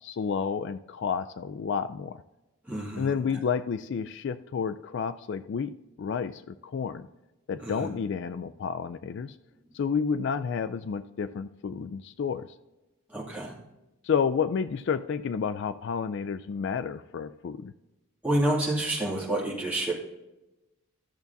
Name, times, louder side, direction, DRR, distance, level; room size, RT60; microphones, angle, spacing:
voice 1, 0.0-2.2 3.0-7.1 7.5-9.3 9.7-12.5 14.0-17.7, left 6 dB, 55° left, 13 dB, 0.3 m, -30 dB
voice 2, 2.7-3.1 7.6-7.9 13.1-13.6 18.2-19.9, right 1 dB, 5° right, -5 dB, 2.2 m, -28 dB
13.0 x 7.0 x 2.7 m, 1.0 s
head